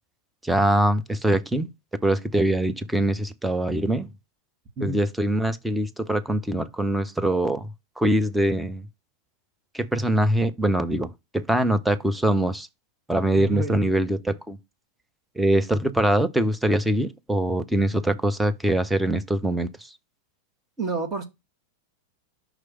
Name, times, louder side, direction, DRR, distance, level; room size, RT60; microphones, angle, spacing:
voice 1, 0.4-1.7 2.0-4.1 4.8-7.7 8.0-8.9 9.7-12.7 13.1-14.6 15.4-19.9, right 1 dB, 5° right, 0.7 m, -23 dB
voice 2, 13.4-13.9 20.8-21.2, right 2 dB, 25° right, 1.8 m, -30 dB
6.0 x 3.2 x 5.6 m
figure-of-eight pair, 90°, 0 cm